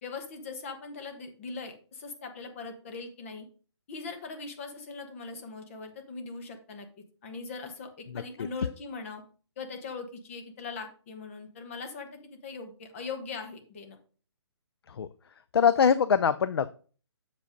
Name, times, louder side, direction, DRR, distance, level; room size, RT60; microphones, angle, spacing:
voice 1, 0.0-3.4 3.9-6.9 7.2-9.2 9.6-14.0, left 4 dB, 30° left, 5 dB, 1.2 m, -40 dB
voice 2, 15.5-16.7, left 7 dB, 60° left, 14 dB, 0.4 m, -23 dB
6.9 x 5.1 x 5.1 m, 0.39 s
hypercardioid pair, 165°, 15 cm